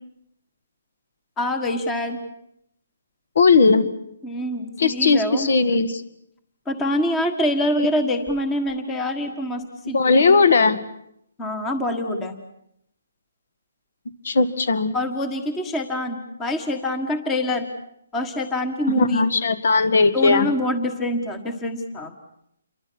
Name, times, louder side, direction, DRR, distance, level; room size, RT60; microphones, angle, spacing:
voice 1, 1.4-2.2 4.2-5.5 6.7-10.3 11.4-12.3 14.9-17.7 18.1-19.2 20.1-22.1, left 1 dB, 10° left, 8 dB, 1.5 m, -25 dB
voice 2, 3.4-3.9 4.8-6.0 9.9-10.8 14.2-14.9 19.0-20.5, left 4 dB, 60° left, 13 dB, 2.0 m, -17 dB
28.5 x 23.5 x 6.3 m, 0.75 s
hypercardioid pair, 165°, 0 cm